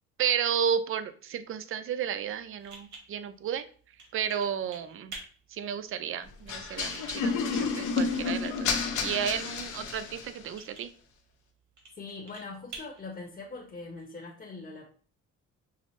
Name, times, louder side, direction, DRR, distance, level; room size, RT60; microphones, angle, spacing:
voice 1, 0.2-3.6 4.1-5.1 5.5-10.9, right 8 dB, 45° right, 11 dB, 0.4 m, -32 dB
sound 1, 2.0-14.0, right 3 dB, 75° right, 1.3 m, -51 dB
sound 2, 6.5-10.4, left 5 dB, 80° left, 0.7 m, -30 dB
voice 2, 11.9-14.9, left 3 dB, 30° left, -1 dB, 0.9 m, -42 dB
5.7 x 2.0 x 3.1 m, 0.43 s
cardioid pair, 90°, 30 cm